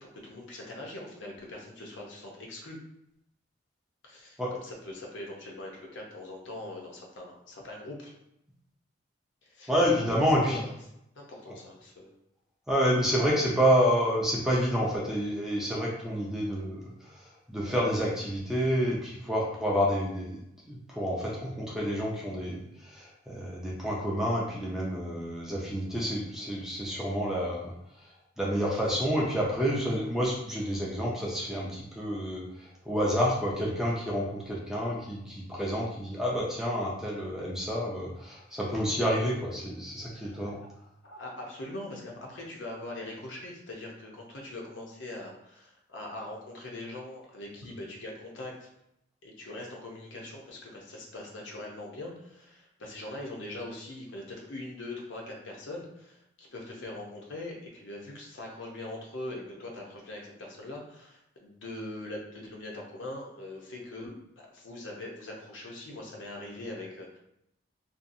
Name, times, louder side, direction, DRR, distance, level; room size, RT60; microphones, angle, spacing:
voice 1, 0.0-2.8 4.0-8.1 9.4-9.7 10.1-10.7 11.2-12.1 40.1-40.5 41.0-48.7 49.2-67.2, left 1 dB, 70° left, -1 dB, 0.6 m, -42 dB
voice 2, 9.7-10.6 12.7-20.4 20.7-27.7 28.4-40.6, equal, 5° right, -4 dB, 0.4 m, -29 dB
2.6 x 2.3 x 2.6 m, 0.79 s
head